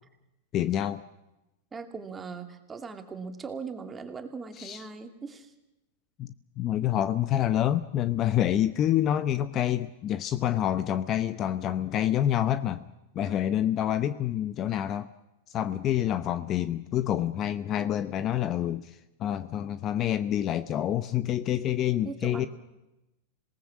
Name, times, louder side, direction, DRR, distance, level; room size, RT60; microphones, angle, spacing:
voice 1, 0.5-1.0 4.6-4.9 6.2-12.9 13.1-15.1 15.5-22.5, left 11 dB, 35° left, 14 dB, 0.8 m, -27 dB
voice 2, 1.7-5.5 13.2-13.4 22.0-22.5, right 5 dB, 15° right, 7 dB, 2.4 m, -40 dB
26.5 x 19.0 x 7.4 m, 0.95 s
supercardioid pair, 140°, 0 cm